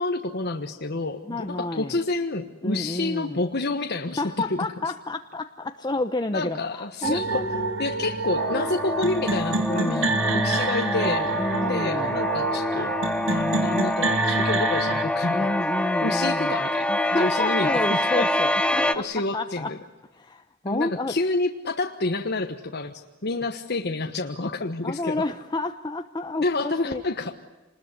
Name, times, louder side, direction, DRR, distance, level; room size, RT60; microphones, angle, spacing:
voice 1, 0.0-4.2 6.3-7.5 7.8-11.3 11.6-12.9 13.3-15.5 16.0-18.3 18.9-19.8 20.6-25.2 26.4-27.3, left 2 dB, 55° left, 5 dB, 1.3 m, -29 dB
voice 2, 1.3-2.0 2.6-3.4 4.2-7.8 9.8-12.1 15.3-16.5 16.9-19.1 19.3-19.7 20.2-21.2 24.8-27.0, left 2 dB, 20° left, 7 dB, 0.9 m, -30 dB
sound 1, 7.0-15.0, right 3 dB, 70° right, 1.8 m, -27 dB
sound 2, 8.4-18.9, left 1 dB, 5° left, 1.0 m, -26 dB
27.5 x 20.5 x 9.7 m, 1.1 s
head